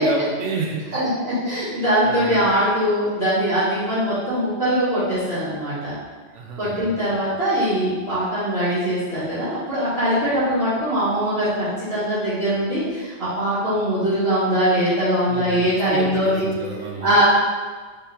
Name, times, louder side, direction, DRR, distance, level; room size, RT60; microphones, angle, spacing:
voice 1, 0.0-1.1 2.0-2.4 6.3-6.9 15.3-17.1, right 4 dB, 75° right, 0 dB, 0.9 m, -30 dB
voice 2, 0.9-5.9 6.6-16.5 17.0-17.2, equal, 55° right, -13 dB, 1.8 m, -22 dB
3.7 x 3.3 x 4.1 m, 1.4 s
omnidirectional pair, 1.3 m